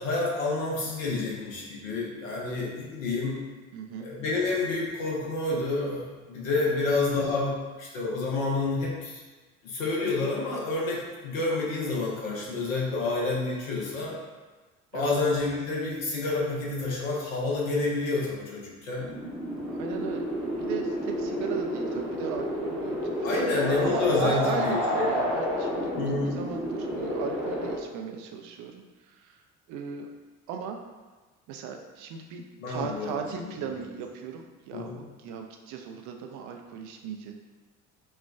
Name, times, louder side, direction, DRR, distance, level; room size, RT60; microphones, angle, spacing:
voice 1, 0.0-3.4 4.0-9.2 9.6-14.2 14.9-19.1 23.2-25.1 26.0-26.4 32.6-33.7 34.7-35.0, left 3 dB, 70° left, -3 dB, 0.9 m, -29 dB
voice 2, 3.7-4.1 6.7-6.8 14.9-15.1 19.7-20.2 20.6-25.9 26.3-29.4 29.7-30.1 30.5-30.8 31.5-37.3, right 7 dB, 45° right, 4 dB, 0.5 m, -37 dB
sound 1, 19.0-27.8, equal, ahead, 0.8 m, -30 dB
4.3 x 2.2 x 2.2 m, 1.3 s
figure-of-eight pair, 60°, 42 cm